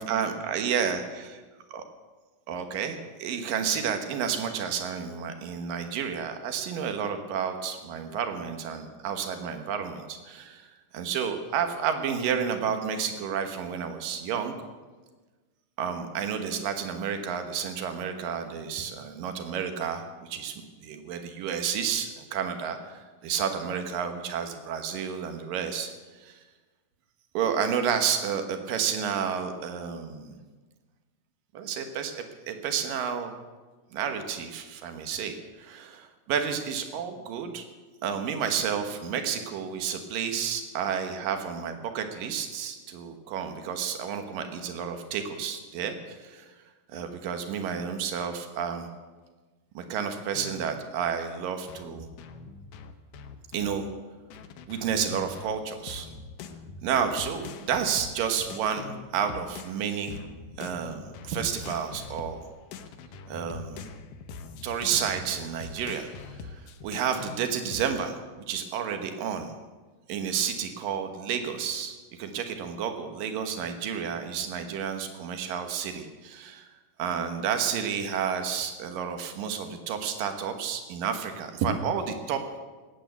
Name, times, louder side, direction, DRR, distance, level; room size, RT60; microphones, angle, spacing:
voice 1, 0.0-1.4 1.7-1.8 2.5-10.7 10.9-14.5 15.8-25.9 26.2-26.4 27.3-30.3 31.5-33.3 33.9-37.6 38.0-46.5 46.9-48.9 49.7-52.1 53.5-53.9 54.7-56.1 56.8-58.8 59.1-60.2 60.6-62.5 63.3-63.9 64.6-66.1 66.4-69.5 70.1-76.7 77.0-82.4, right 7 dB, 80° right, 6 dB, 3.0 m, -31 dB
sound 1, 50.3-50.7 51.7-53.8 54.3-59.8 60.1-62.4 62.7-67.9, left 5 dB, 75° left, 2.5 m, -43 dB
19.0 x 8.9 x 8.1 m, 1.3 s
omnidirectional pair, 3.9 m